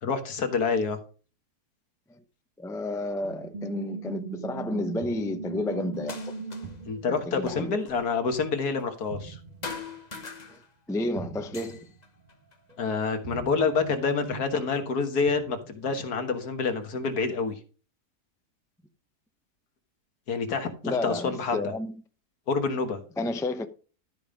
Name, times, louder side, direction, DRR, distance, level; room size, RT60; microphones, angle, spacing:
voice 1, 0.0-1.0 6.9-9.4 12.8-17.6 20.3-21.6 22.5-23.0, left 4 dB, 75° left, 1.9 m, -27 dB
voice 2, 2.6-6.3 7.1-7.8 10.5-10.6 10.9-11.9 20.8-21.9 23.2-23.7, left 2 dB, 5° left, 0.4 m, -31 dB
sound 1, 3.2-8.8 9.1-9.9 10.1-10.2 11.2-11.9 12.7-16.1 16.8-17.3, right 3 dB, 30° right, 1.9 m, -40 dB
sound 2, 5.9-6.9 7.1-9.4 9.6-11.0 11.3-13.2 13.9-14.8 15.7-15.8 16.4-17.5, left 4 dB, 30° left, 1.1 m, -44 dB
13.0 x 5.2 x 5.0 m
omnidirectional pair, 1.7 m